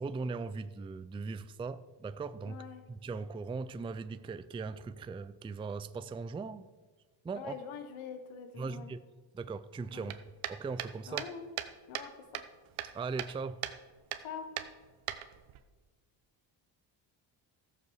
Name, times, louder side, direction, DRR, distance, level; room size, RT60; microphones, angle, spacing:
voice 1, 0.0-2.6 2.9-6.7 7.2-7.6 8.6-9.0 9.3-10.2 10.5-11.2 12.8-13.6, right 4 dB, 10° right, 12 dB, 0.3 m, -39 dB
voice 2, 2.4-2.8 7.3-8.9 9.9-10.1 11.1-11.5 11.9-12.4 14.2-14.5, left 7 dB, 90° left, 8 dB, 1.3 m, -44 dB
sound 1, 10.1-12.1 12.3-13.4 13.6-13.8 14.1-14.3 14.6-15.6, right 12 dB, 85° right, 0.9 m, -38 dB
14.0 x 7.3 x 6.4 m, 1.3 s
cardioid pair, 100°, 47 cm